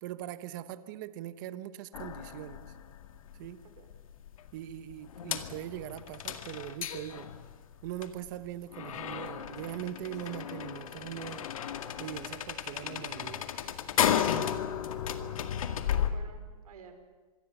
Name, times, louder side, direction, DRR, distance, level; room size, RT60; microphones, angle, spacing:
voice 1, 0.0-2.6 3.4-3.6 4.5-7.3 7.8-11.5 12.0-13.5, right 12 dB, 30° right, 14 dB, 1.0 m, -41 dB
sound 1, 1.9-16.1, left 9 dB, 65° left, 2.1 m, -34 dB
sound 2, 8.9-15.1, left 4 dB, 20° left, 7.8 m, -57 dB
voice 2, 15.2-16.9, right 6 dB, 70° right, 7 dB, 4.9 m, -54 dB
25.5 x 22.0 x 7.2 m, 1.3 s
hypercardioid pair, 170°, 19 cm